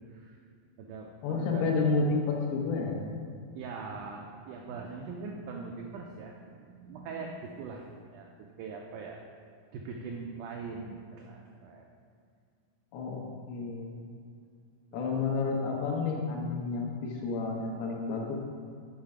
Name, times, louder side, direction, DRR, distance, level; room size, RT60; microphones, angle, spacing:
voice 1, 0.1-0.4 0.8-1.7 3.5-8.3 8.6-9.2 9.7-11.8 14.9-15.0, right 4 dB, 90° right, 0 dB, 1.8 m, -42 dB
voice 2, 1.2-2.9 12.9-13.2 13.5-14.0 14.9-18.3, left 4 dB, 90° left, -1 dB, 3.0 m, -30 dB
7.4 x 5.5 x 4.8 m, 2.3 s
omnidirectional pair, 4.3 m